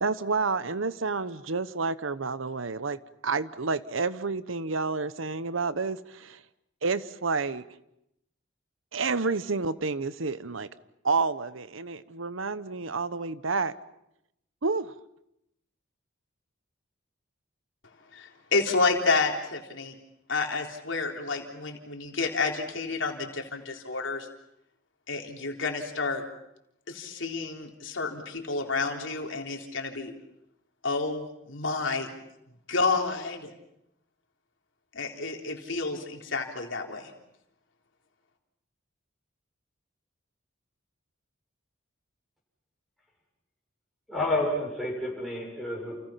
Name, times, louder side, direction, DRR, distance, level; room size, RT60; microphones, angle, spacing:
voice 1, 0.0-6.4 6.8-7.6 8.9-10.7 11.0-13.7 14.6-14.9, right 4 dB, 80° right, 1.0 m, -29 dB
voice 2, 18.1-20.0 20.3-24.3 25.1-26.2 26.9-30.1 30.8-32.1 32.7-33.5 34.9-37.1, left 4 dB, 70° left, 3.7 m, -30 dB
voice 3, 44.1-46.0, left 1 dB, ahead, 7.0 m, -29 dB
29.5 x 29.0 x 5.9 m
head